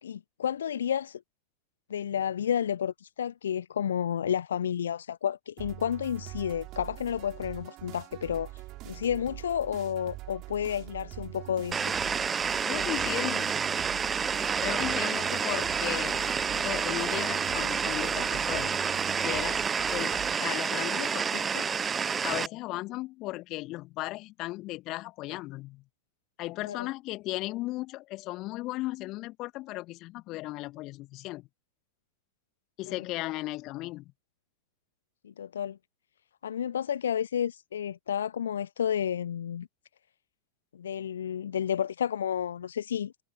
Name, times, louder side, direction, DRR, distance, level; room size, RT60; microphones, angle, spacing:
voice 1, 0.0-1.2 1.9-8.5 8.8-11.9 26.6-26.9 32.9-33.0 35.2-35.8 36.4-39.7 40.7-43.1, left 9 dB, 65° left, 1.1 m, -31 dB
sound 1, 5.6-20.4, right 19 dB, 40° right, 7.0 m, -43 dB
sound 2, 11.7-22.5, right 6 dB, 20° right, 0.8 m, -29 dB
voice 2, 12.6-13.8 14.6-16.2 16.5-18.8 19.2-21.7 22.2-25.8 26.4-31.5 32.8-34.1, left 19 dB, 40° left, 2.2 m, -36 dB
figure-of-eight pair, 90°, 0 cm